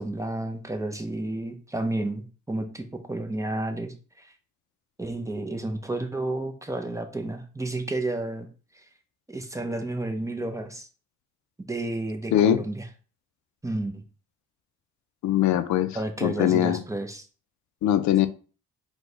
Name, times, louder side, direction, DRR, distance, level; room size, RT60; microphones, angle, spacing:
voice 1, 0.0-4.3 5.0-8.5 8.7-8.8 9.3-10.9 11.7-12.9 13.6-14.0 15.9-17.3, right 2 dB, 10° right, 0.7 m, -31 dB
voice 2, 15.2-16.8 17.8-18.3, left 11 dB, 70° left, 0.5 m, -22 dB
4.6 x 2.3 x 3.9 m
cardioid pair, 90°, 30 cm